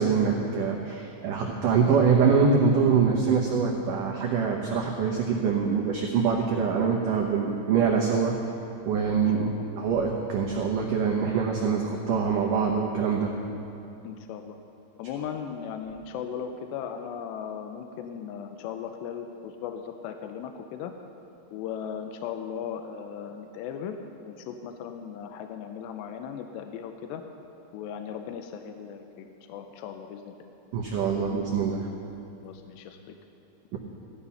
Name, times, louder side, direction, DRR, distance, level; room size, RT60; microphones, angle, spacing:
voice 1, 0.0-8.4 8.9-13.3 30.7-31.9 33.7-33.8, right 5 dB, 85° right, -1 dB, 1.8 m, -24 dB
voice 2, 9.1-9.6 14.0-14.6 15.0-20.9 21.5-24.0 24.2-27.2 27.7-30.3 32.4-33.0, left 8 dB, 80° left, 6 dB, 2.7 m, -37 dB
16.0 x 13.5 x 5.6 m, 2.9 s
omnidirectional pair, 5.4 m